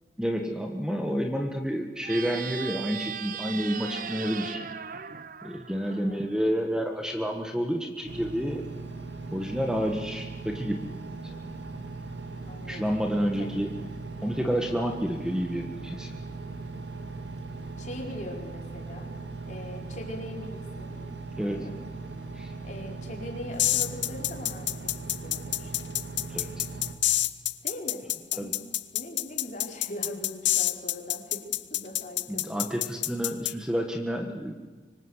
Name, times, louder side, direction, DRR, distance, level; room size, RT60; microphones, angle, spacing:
voice 1, 0.2-4.6 5.4-8.6 9.3-10.9 12.7-13.7 14.2-16.2 21.4-21.6 22.3-22.5 26.3-26.7 28.4-28.5 32.3-34.5, equal, 5° right, 3 dB, 1.6 m, -29 dB
sound 1, 2.0-6.5, right 7 dB, 50° right, 0.9 m, -38 dB
voice 2, 5.8-6.3 12.5-13.8 17.8-19.1 19.4-20.9 21.5-21.7 22.6-24.9 25.2-25.9 27.6-28.0 28.3-28.6 28.9-32.7, left 1 dB, 45° left, 1 dB, 4.5 m, -41 dB
Engine, 8.0-26.9, right 3 dB, 70° right, 2.5 m, -39 dB
sound 2, 23.6-33.5, left 14 dB, 85° left, 0.9 m, -27 dB
25.0 x 25.0 x 8.1 m, 1.4 s
head